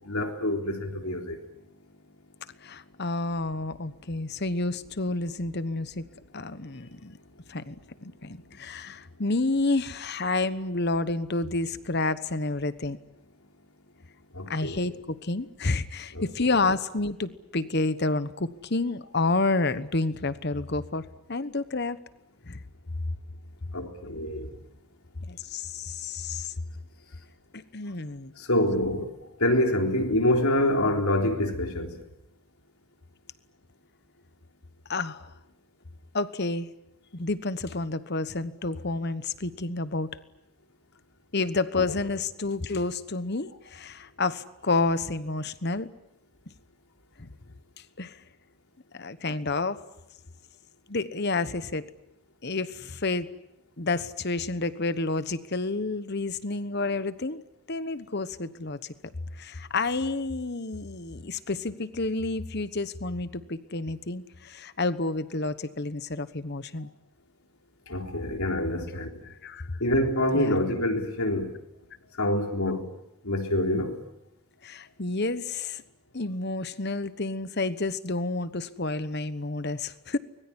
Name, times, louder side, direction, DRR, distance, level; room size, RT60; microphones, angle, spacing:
voice 1, 0.1-1.4 14.3-14.8 16.1-16.2 23.7-24.5 28.4-29.1 29.4-32.0 41.8-41.9 67.9-69.1 69.8-71.5 72.2-72.9 73.2-74.0, left 1 dB, 80° left, 3.7 m, -26 dB
voice 2, 2.6-6.1 6.3-7.2 7.5-13.0 14.5-22.0 22.5-22.6 25.3-26.5 27.7-28.3 34.9-35.3 36.1-36.7 37.1-40.1 41.3-45.9 47.2-47.3 48.0-48.2 48.9-49.8 50.9-51.8 52.4-53.3 53.8-57.4 57.7-58.8 59.4-66.9 69.2-69.8 70.3-70.6 74.6-75.8 76.1-80.2, left 3 dB, 50° left, 1.2 m, -29 dB
24.5 x 21.5 x 10.0 m
head